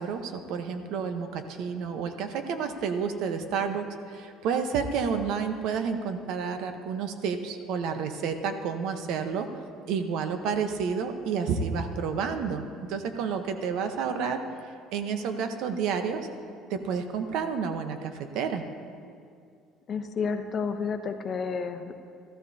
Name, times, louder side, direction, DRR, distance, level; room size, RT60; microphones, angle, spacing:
voice 1, 0.0-9.5 9.9-14.4 14.9-16.3 16.7-18.7, right 6 dB, 70° right, 7 dB, 0.9 m, -30 dB
voice 2, 19.9-21.9, left 5 dB, 40° left, 5 dB, 0.8 m, -31 dB
14.5 x 14.0 x 2.7 m, 2.3 s
cardioid pair, 115°, 0 cm